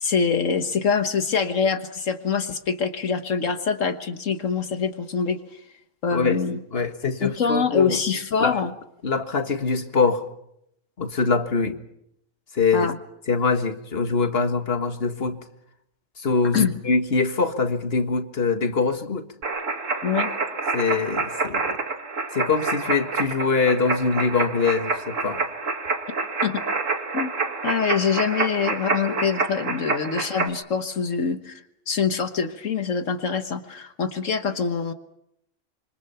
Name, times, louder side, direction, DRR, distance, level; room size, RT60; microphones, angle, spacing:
voice 1, 0.0-5.4 6.0-6.6 7.2-8.7 12.7-13.0 16.5-16.7 20.0-20.3 26.4-26.6 27.1-27.3 27.6-31.6 31.9-34.9, left 6 dB, 70° left, 8 dB, 1.6 m, -24 dB
voice 2, 6.7-8.0 8.4-8.6 9.0-10.2 11.0-11.8 12.5-12.9 13.3-15.4 16.2-19.3 20.7-21.8 22.3-25.4, left 4 dB, 50° left, 7 dB, 1.9 m, -23 dB
sound 1, 19.4-30.5, right 4 dB, 70° right, 2.2 m, -27 dB
26.5 x 25.5 x 5.8 m, 0.77 s
omnidirectional pair, 1.4 m